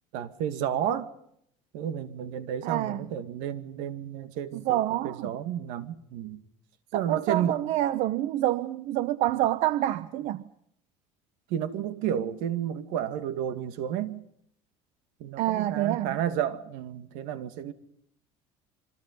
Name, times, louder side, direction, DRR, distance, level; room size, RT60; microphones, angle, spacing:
voice 1, 0.1-1.1 1.7-6.4 6.9-7.6 11.5-14.2 15.2-17.7, right 9 dB, 75° right, 2.3 m, -31 dB
voice 2, 2.6-3.0 4.5-5.3 6.9-10.4 15.4-16.2, right 14 dB, 60° right, 1.0 m, -27 dB
28.0 x 25.5 x 5.6 m
cardioid pair, 140°, 13 cm